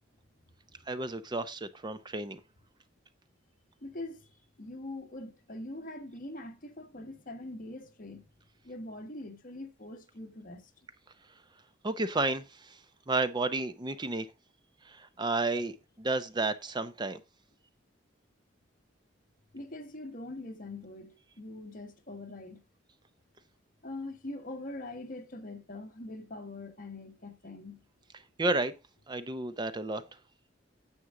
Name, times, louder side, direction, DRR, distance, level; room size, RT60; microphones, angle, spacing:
voice 1, 0.9-2.4 11.8-12.8 13.1-14.3 14.9-17.2 28.4-28.7 29.1-30.0, right 2 dB, 25° right, 0.6 m, -32 dB
voice 2, 3.8-8.3 8.6-10.7 19.5-22.6 23.8-27.8, left 2 dB, 50° left, 1.5 m, -43 dB
9.5 x 7.3 x 3.7 m
head